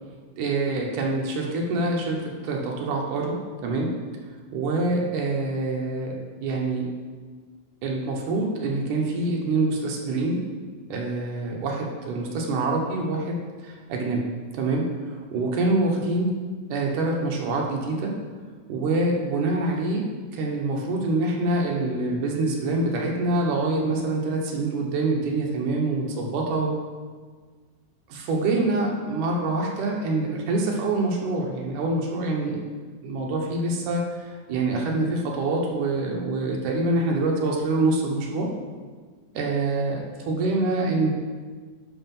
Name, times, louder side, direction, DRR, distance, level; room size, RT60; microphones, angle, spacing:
voice 1, 0.4-3.4 3.6-3.9 4.5-6.9 7.8-10.4 10.9-14.2 14.5-16.3 16.7-18.1 18.7-20.1 20.3-26.8 28.1-32.6 33.0-38.5 39.3-41.1, right 2 dB, 85° right, -1 dB, 2.6 m, -25 dB
10.5 x 5.0 x 5.4 m, 1.5 s
omnidirectional pair, 3.5 m